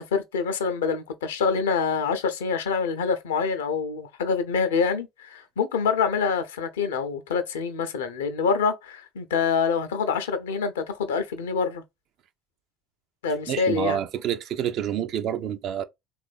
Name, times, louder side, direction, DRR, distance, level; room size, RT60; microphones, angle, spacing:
voice 1, 0.0-11.8 13.2-14.0, left 5 dB, 75° left, 0.5 m, -26 dB
voice 2, 13.5-15.8, right 10 dB, 50° right, 0.4 m, -28 dB
3.1 x 2.4 x 2.4 m
figure-of-eight pair, 60°, 0 cm